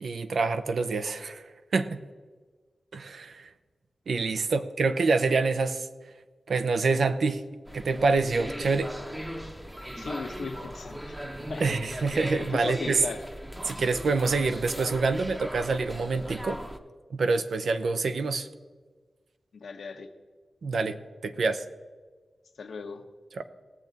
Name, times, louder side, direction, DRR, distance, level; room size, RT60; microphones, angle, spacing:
voice 1, 0.0-1.4 1.7-2.0 2.9-3.5 4.1-5.9 6.5-7.4 7.7-8.9 11.6-13.0 13.6-16.6 17.1-18.5 20.6-21.0 21.2-21.6 23.3-23.4, right 4 dB, 75° right, 10 dB, 0.7 m, -26 dB
sound 1, 7.7-16.8, equal, 10° right, 0.8 m, -38 dB
voice 2, 9.9-11.2 11.5-11.7 12.4-13.2 19.5-20.1 22.6-23.0, left 4 dB, 80° left, 5 dB, 1.0 m, -37 dB
18.5 x 7.4 x 4.0 m, 1.4 s
wide cardioid pair, 80°, 0 cm